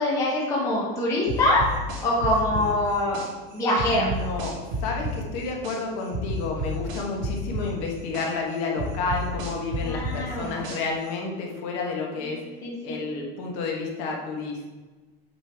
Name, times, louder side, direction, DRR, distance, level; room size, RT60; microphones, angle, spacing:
voice 1, 0.0-1.7 2.0-3.2 3.5-4.1 9.8-10.6 12.2-13.0, left 1 dB, 10° left, -5 dB, 0.9 m, -24 dB
sound 1, 1.3-3.3 3.8-5.8 6.1-8.3 8.8-11.0, right 1 dB, 65° right, 2.0 m, -30 dB
voice 2, 3.9-4.5 4.8-12.4 12.8-14.7, left 3 dB, 45° left, 0 dB, 1.3 m, -30 dB
7.9 x 5.4 x 3.5 m, 1.3 s
supercardioid pair, 180°, 29 cm